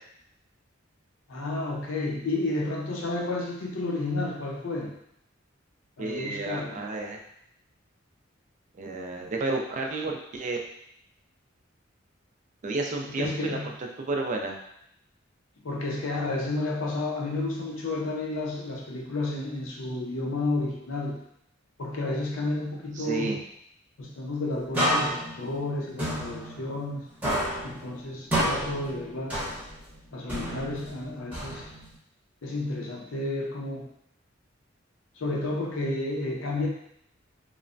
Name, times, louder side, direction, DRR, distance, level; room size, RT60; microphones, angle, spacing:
voice 1, 1.3-4.9 6.0-6.8 13.1-13.7 15.6-21.2 21.8-23.4 24.0-27.0 27.6-29.4 30.1-31.7 32.4-33.9 35.2-36.7, left 2 dB, 80° left, -1 dB, 0.6 m, -31 dB
voice 2, 6.0-7.2 8.8-10.6 12.6-13.6 14.0-14.6 23.0-23.4, right 2 dB, 40° right, 2 dB, 0.3 m, -31 dB
sound 1, 24.7-27.0 27.2-29.9 30.3-32.0, equal, 10° right, 0.9 m, -30 dB
3.1 x 2.1 x 2.5 m, 0.72 s
head